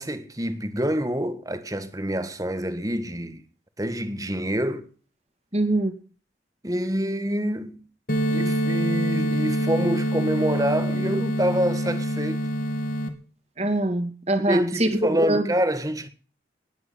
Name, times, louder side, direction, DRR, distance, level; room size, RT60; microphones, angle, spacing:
voice 1, 0.0-3.4 3.8-4.9 6.6-7.8 8.3-12.5 14.5-16.1, equal, 20° right, 1.6 m, -26 dB
voice 2, 5.5-5.9 13.6-15.5, right 1 dB, 35° right, 2.5 m, -23 dB
sound 1, 8.1-13.1, equal, 50° left, 2.6 m, -25 dB
20.0 x 9.4 x 5.6 m
head